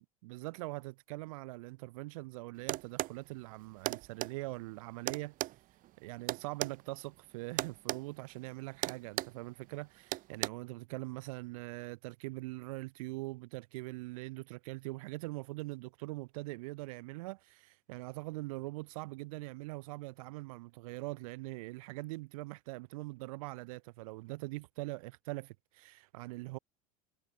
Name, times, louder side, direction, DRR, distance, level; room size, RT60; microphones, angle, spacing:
voice 1, 0.0-5.3 6.0-26.6, right 22 dB, 70° right, 1.6 m, -42 dB
sound 1, 2.7-3.2 3.9-4.3 5.1-6.8 7.6-8.0 8.3-8.5 8.8-9.4 10.1-10.5, right 16 dB, 50° right, 1.1 m, -35 dB
hypercardioid pair, 100°, 18 cm